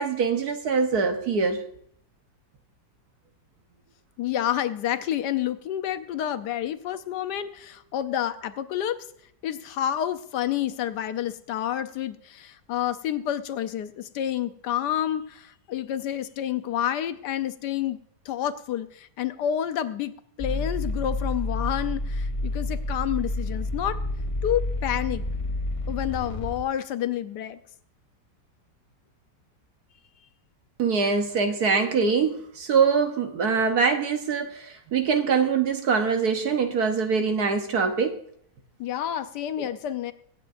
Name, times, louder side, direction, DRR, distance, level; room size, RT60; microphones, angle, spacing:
voice 1, 0.0-1.6 30.8-38.2 39.6-39.7, right 5 dB, 60° right, 6 dB, 1.4 m, -23 dB
voice 2, 4.2-9.0 9.4-18.0 18.2-24.0 24.4-25.2 25.9-27.6 38.8-40.1, left 11 dB, 75° left, 11 dB, 1.2 m, -29 dB
sound 1, 20.4-26.6, left 2 dB, 30° left, 0.6 m, -29 dB
24.0 x 8.9 x 2.5 m, 0.68 s
omnidirectional pair, 1.9 m